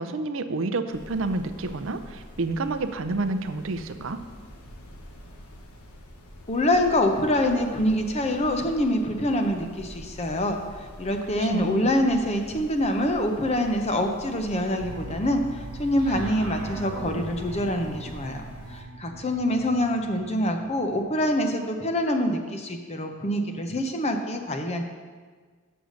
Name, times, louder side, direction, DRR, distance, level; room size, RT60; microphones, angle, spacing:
voice 1, 0.0-4.2 11.4-11.9, right 3 dB, 60° right, 9 dB, 0.5 m, -29 dB
sound 1, 0.9-18.8, equal, 90° left, 1.1 m, -46 dB
voice 2, 6.5-18.4 18.7-24.8, left 1 dB, 30° left, 5 dB, 0.7 m, -25 dB
sound 2, 14.8-21.5, right 2 dB, 85° right, 0.9 m, -39 dB
6.9 x 6.4 x 6.3 m, 1.5 s
head